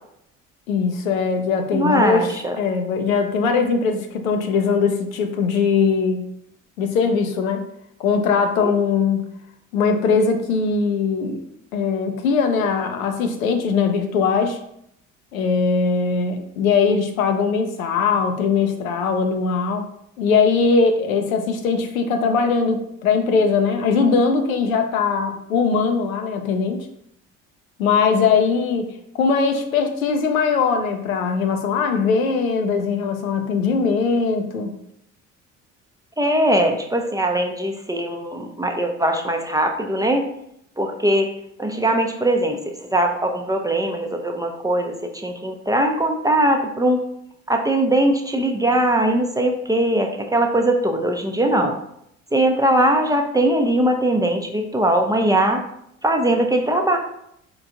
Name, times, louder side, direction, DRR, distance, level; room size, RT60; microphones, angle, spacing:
voice 1, 0.7-6.3 6.8-7.7 8.0-9.2 9.7-11.4 11.7-14.6 15.3-19.9 20.2-26.9 27.8-28.9 29.1-34.7, left 5 dB, 85° left, 5 dB, 0.6 m, -20 dB
voice 2, 1.7-2.6 8.6-8.7 36.2-40.3 40.8-41.3 41.6-47.1 47.5-51.7 52.3-55.6 56.0-57.0, right 1 dB, 10° right, 3 dB, 0.5 m, -20 dB
4.6 x 3.4 x 2.5 m, 0.75 s
hypercardioid pair, 55°, 40 cm